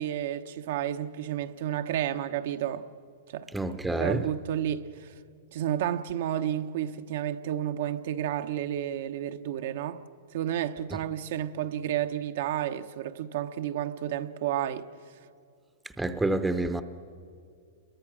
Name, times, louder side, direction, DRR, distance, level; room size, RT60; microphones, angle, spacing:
voice 1, 0.0-2.9 3.3-5.1 5.5-10.0 10.3-14.9, right 11 dB, 65° right, 0.9 m, -31 dB
voice 2, 3.5-4.2 16.0-16.8, right 2 dB, 5° right, 0.7 m, -28 dB
28.5 x 22.0 x 6.1 m
hypercardioid pair, 145°, 0 cm